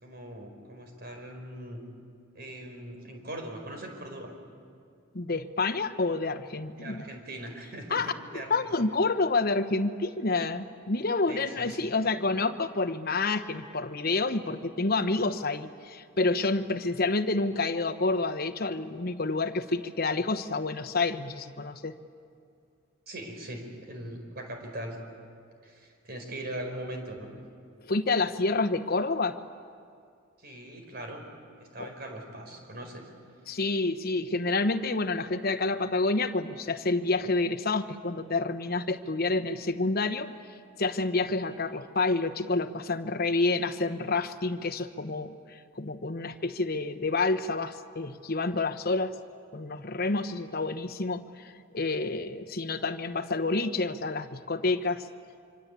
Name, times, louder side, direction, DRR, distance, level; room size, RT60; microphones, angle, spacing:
voice 1, 0.0-1.8 2.3-4.3 6.8-8.0 8.3-8.9 11.3-12.1 23.1-25.0 25.6-27.3 30.4-31.2 31.6-33.0, right 1 dB, 50° right, 3 dB, 4.8 m, -40 dB
voice 2, 5.1-7.0 7.9-22.0 27.9-29.4 31.8-31.9 33.5-49.1 49.5-55.1, left 3 dB, 50° left, 8 dB, 1.1 m, -29 dB
25.5 x 25.5 x 8.4 m, 2.3 s
head